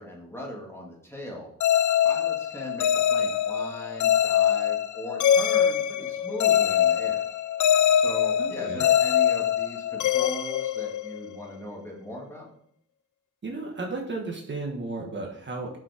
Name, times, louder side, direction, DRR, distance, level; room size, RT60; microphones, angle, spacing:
voice 1, 0.0-1.5 2.0-7.2 7.9-12.5, equal, 10° left, -2 dB, 2.2 m, -39 dB
sound 1, 1.6-11.4, left 9 dB, 85° left, 0.5 m, -23 dB
voice 2, 8.4-8.8 13.4-15.8, right 3 dB, 40° right, -1 dB, 1.4 m, -34 dB
7.3 x 6.1 x 4.9 m, 0.68 s
wide cardioid pair, 165°, 29 cm